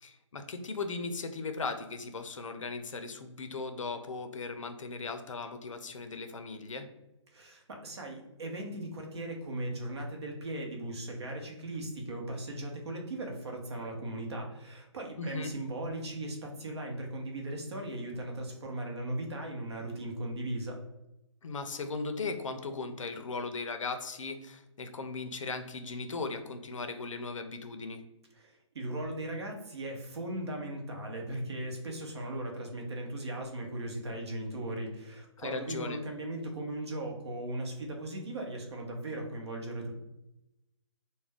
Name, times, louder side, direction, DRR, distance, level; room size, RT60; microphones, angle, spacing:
voice 1, 0.0-6.9 15.2-15.5 21.4-28.0 35.4-36.0, left 4 dB, 75° left, 8 dB, 0.5 m, -37 dB
voice 2, 7.3-20.8 28.3-39.9, right 1 dB, 55° right, 2 dB, 0.8 m, -38 dB
2.4 x 2.1 x 3.5 m, 0.90 s
hypercardioid pair, 160°, 16 cm